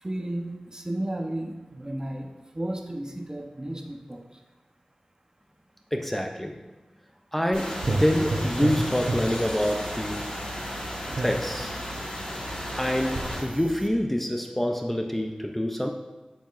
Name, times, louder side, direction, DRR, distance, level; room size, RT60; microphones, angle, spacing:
voice 1, 0.0-4.2, right 1 dB, 30° right, 3 dB, 0.8 m, -33 dB
voice 2, 5.9-6.6 7.3-10.3 11.2-11.7 12.8-15.9, equal, 10° left, 3 dB, 0.5 m, -26 dB
sound 1, 7.5-13.4, left 1 dB, 35° left, 1.6 m, -35 dB
sound 2, 7.5-13.9, right 2 dB, 60° right, 0.7 m, -33 dB
7.5 x 7.1 x 2.5 m, 1.2 s
wide cardioid pair, 60°, 2 cm